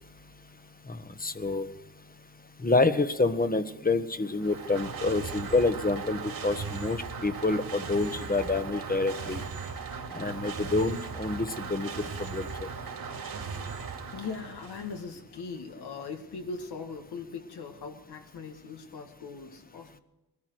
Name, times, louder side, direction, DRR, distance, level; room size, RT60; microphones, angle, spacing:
voice 1, 0.9-1.7 2.6-9.4 10.1-11.9 12.3-12.7, left 3 dB, 25° left, 10 dB, 1.3 m, -27 dB
sound 1, 4.2-15.1, right 5 dB, 65° right, 2.8 m, -38 dB
voice 2, 14.1-20.0, left 5 dB, 85° left, 4 dB, 2.1 m, -40 dB
20.5 x 13.5 x 4.7 m, 0.98 s
cardioid pair, 70°, 38 cm